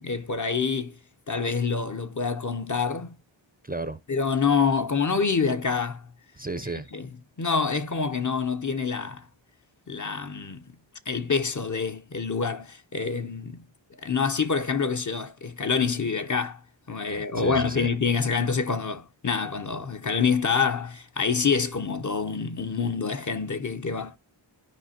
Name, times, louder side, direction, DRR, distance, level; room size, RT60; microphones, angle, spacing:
voice 1, 0.0-1.0 1.3-3.2 4.1-6.0 6.9-7.1 7.4-9.3 9.9-10.6 11.1-13.6 14.0-16.6 16.9-24.1, left 5 dB, 40° left, 0.8 m, -26 dB
voice 2, 3.6-4.0 6.4-6.9 17.1-17.9, right 2 dB, 20° right, 0.6 m, -34 dB
13.5 x 5.0 x 2.8 m
wide cardioid pair, 100°, 47 cm